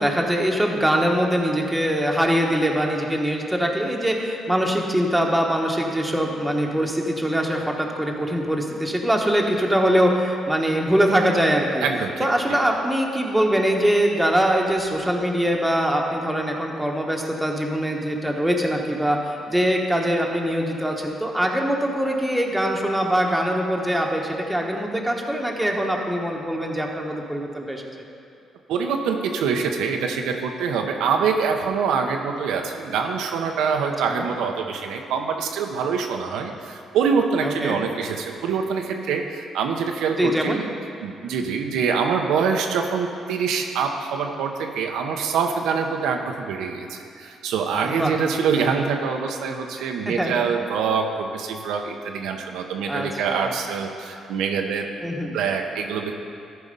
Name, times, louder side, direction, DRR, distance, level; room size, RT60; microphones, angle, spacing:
voice 1, 0.0-11.8 12.2-27.8 34.0-34.3 37.4-37.8 40.2-40.6 47.8-48.1 49.8-50.3 52.9-53.5 55.0-55.4, equal, 5° right, 0 dB, 1.2 m, -23 dB
voice 2, 11.8-12.6 28.7-40.7 41.0-54.9 55.3-56.1, right 6 dB, 90° right, 3 dB, 0.7 m, -25 dB
13.5 x 4.9 x 5.3 m, 2.5 s
cardioid pair, 90°, 0 cm